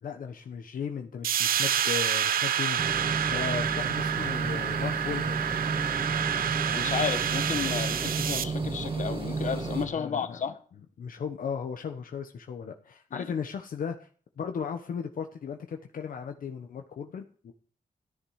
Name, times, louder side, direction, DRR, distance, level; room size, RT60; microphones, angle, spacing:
voice 1, 0.0-2.8 3.3-5.4 9.9-10.4 11.0-14.1 14.4-17.5, left 6 dB, 75° left, 1.1 m, -36 dB
sound 1, 1.2-8.4, right 9 dB, 85° right, 0.6 m, -28 dB
sound 2, 2.8-9.9, right 3 dB, 40° right, 2.1 m, -32 dB
voice 2, 6.7-10.6 13.1-13.3, left 7 dB, 60° left, 1.4 m, -32 dB
13.5 x 10.5 x 4.9 m
wide cardioid pair, 140°, 14 cm